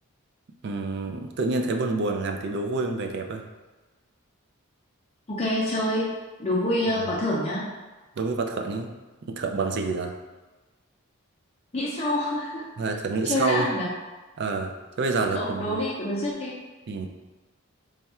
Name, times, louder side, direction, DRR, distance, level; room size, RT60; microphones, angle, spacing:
voice 1, 0.6-3.4 6.9-7.2 8.2-8.9 9.2-10.2 12.8-13.7 14.4-15.8 16.9-17.1, right 3 dB, 50° right, 4 dB, 0.3 m, -28 dB
voice 2, 5.3-6.1 6.4-7.7 11.7-12.6 13.2-13.9 15.3-16.5, left 1 dB, 25° left, -5 dB, 0.5 m, -26 dB
3.3 x 2.3 x 4.2 m, 1.2 s
head